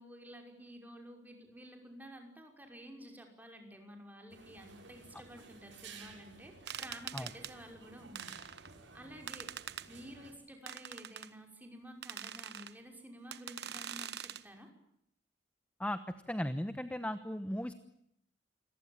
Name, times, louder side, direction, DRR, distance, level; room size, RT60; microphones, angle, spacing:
voice 1, 0.0-8.6 8.9-14.7, equal, 10° right, 3 dB, 5.8 m, -52 dB
sound 1, 4.3-10.3, right 4 dB, 90° right, 6.9 m, -55 dB
sound 2, 6.7-7.5 8.2-8.7 9.3-9.9 10.7-11.3 12.0-12.7 13.3-14.4, right 9 dB, 60° right, 1.2 m, -44 dB
voice 2, 16.3-17.7, left 1 dB, 10° left, 11 dB, 1.1 m, -36 dB
28.5 x 23.0 x 8.9 m, 0.73 s
head